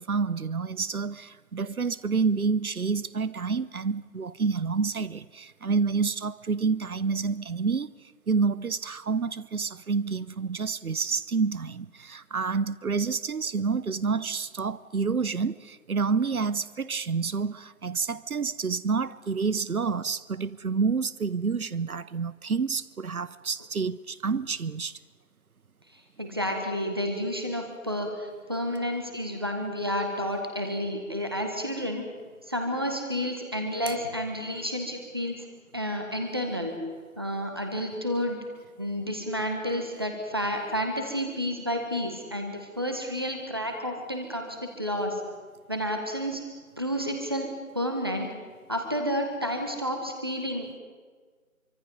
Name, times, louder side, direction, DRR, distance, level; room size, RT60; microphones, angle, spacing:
voice 1, 0.0-7.9 8.3-25.0, right 5 dB, 85° right, 1.0 m, -28 dB
voice 2, 25.9-32.0 32.4-35.5 35.7-36.8 37.2-38.4 38.8-45.2 45.7-46.4 46.8-48.3 48.7-50.8, equal, 15° right, 1.6 m, -30 dB
26.5 x 24.5 x 5.4 m
figure-of-eight pair, 180°, 42 cm